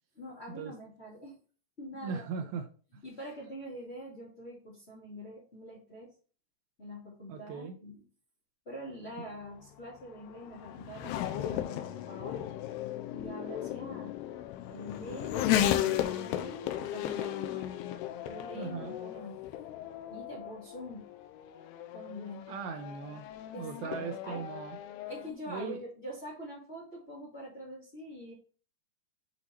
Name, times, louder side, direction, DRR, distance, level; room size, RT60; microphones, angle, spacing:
voice 1, 0.1-1.4 1.8-2.5 3.0-6.1 6.8-8.0 8.6-12.4 13.1-14.1 14.7-17.7 18.2-19.4 20.1-21.0 21.9-22.4 23.5-24.4 25.1-28.3, equal, 30° left, -6 dB, 1.1 m, -45 dB
voice 2, 1.9-2.7 7.3-7.7 9.2-9.3 18.5-19.0 22.5-23.3 23.6-24.8 25.5-25.8, right 5 dB, 80° right, 5 dB, 2.3 m, -38 dB
Race car auto racing / Accelerating revving vroom, 9.1-25.3, left 12 dB, 80° left, 2.5 m, -35 dB
8.6 x 3.0 x 4.0 m, 0.39 s
omnidirectional pair, 4.8 m